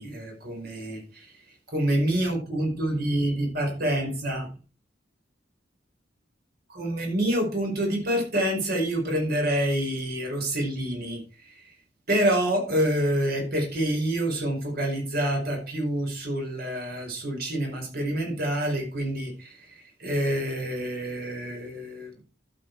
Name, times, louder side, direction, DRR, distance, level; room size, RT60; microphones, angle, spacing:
voice 1, 0.0-1.3 1.7-4.5 6.7-11.7 12.1-22.1, right 1 dB, 55° right, 2 dB, 4.9 m, -27 dB
12.0 x 7.9 x 4.7 m, 0.35 s
head